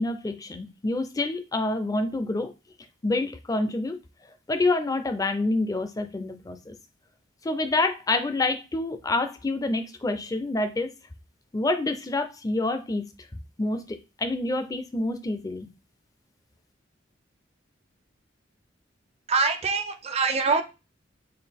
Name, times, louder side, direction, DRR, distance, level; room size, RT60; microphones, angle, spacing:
voice 1, 0.0-2.5 3.0-4.0 4.5-6.7 7.4-10.9 11.5-13.0 13.6-13.8 14.2-15.7, left 2 dB, 20° left, 8 dB, 0.4 m, -27 dB
voice 2, 19.3-20.6, right 4 dB, 35° right, 7 dB, 0.5 m, -24 dB
3.9 x 2.4 x 3.5 m, 0.28 s
head